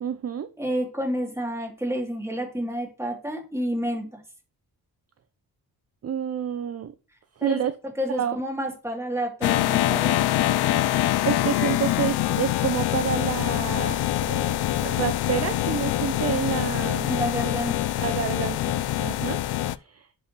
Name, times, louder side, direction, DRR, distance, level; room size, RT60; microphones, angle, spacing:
voice 1, 0.0-0.5 6.0-6.9 7.4-7.7 8.2-8.4 11.2-17.1 18.0-19.4 19.8-20.1, right 8 dB, 40° right, 11 dB, 0.5 m, -29 dB
voice 2, 0.6-4.2 7.4-7.7 8.0-10.2 17.0-17.8, equal, 5° right, 0 dB, 2.7 m, -29 dB
sound 1, 9.4-19.8, left 13 dB, 80° left, 0.5 m, -24 dB
10.5 x 4.1 x 3.0 m, 0.35 s
cardioid pair, 85°, 39 cm